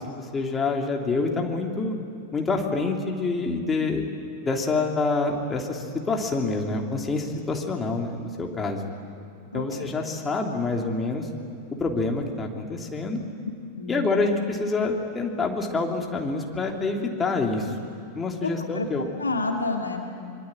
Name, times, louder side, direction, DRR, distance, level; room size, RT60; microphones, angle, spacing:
voice 1, 0.0-2.0 2.3-4.1 4.4-8.8 9.5-11.3 11.8-13.2 13.9-17.7 18.1-19.0, left 3 dB, 15° left, 1 dB, 3.2 m, -27 dB
voice 2, 9.5-9.9 13.7-14.1 18.4-20.1, left 3 dB, 75° left, 2 dB, 2.6 m, -30 dB
25.0 x 24.5 x 9.0 m, 2.4 s
figure-of-eight pair, 90°, 0 cm